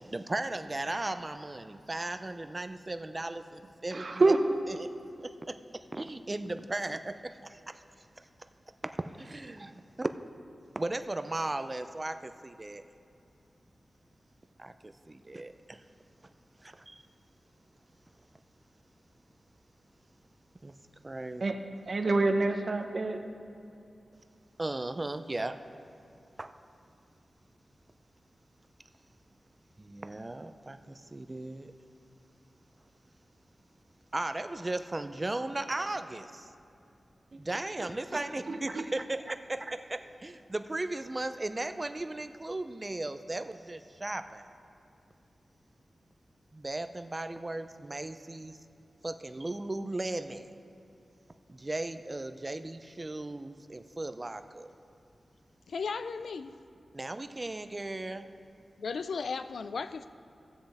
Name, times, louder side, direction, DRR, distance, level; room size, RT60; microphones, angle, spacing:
voice 1, 0.0-4.2 4.7-4.9 5.2-7.8 9.0-10.1 10.8-12.8 14.6-15.8 16.6-17.0 20.6-20.8 21.0-21.5 24.6-25.6 26.4-26.5 29.8-31.7 34.1-36.5 37.4-44.5 46.5-48.6 49.0-50.5 51.5-54.7 56.9-58.3, right 2 dB, 25° right, 9 dB, 0.4 m, -36 dB
voice 2, 3.9-4.4 21.4-21.5 21.9-23.2 38.5-38.8, right 3 dB, 55° right, 5 dB, 0.8 m, -26 dB
voice 3, 55.7-56.6 58.8-60.1, left 5 dB, 90° left, 12 dB, 0.3 m, -35 dB
16.0 x 7.6 x 3.5 m, 2.6 s
wide cardioid pair, 95°, 0 cm